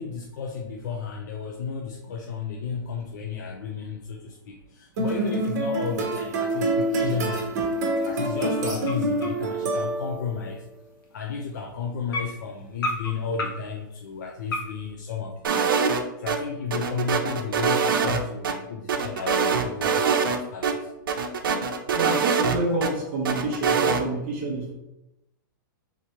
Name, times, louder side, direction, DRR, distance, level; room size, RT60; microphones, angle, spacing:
voice 1, 0.0-7.5 8.0-10.6 11.1-15.8 16.2-20.9, left 5 dB, 60° left, 1 dB, 0.5 m, -33 dB
sound 1, 5.0-10.3, right 1 dB, 50° right, 1.1 m, -26 dB
sound 2, 6.4-6.5 6.9-7.0 7.6-7.9 8.2-8.3 8.8-9.7 10.3-10.4 11.0-11.1 11.4-11.6 12.1-13.8 14.5-14.9, left 2 dB, 80° left, 1.2 m, -33 dB
sound 3, 15.4-16.4 16.7-18.5 18.9-20.4 20.6-20.7 21.1-22.9 23.2-24.0, right 6 dB, 75° right, 0.7 m, -23 dB
voice 2, 21.9-24.7, right 2 dB, 30° right, -1 dB, 0.7 m, -28 dB
3.8 x 3.1 x 4.2 m, 0.89 s
hypercardioid pair, 170°, 11 cm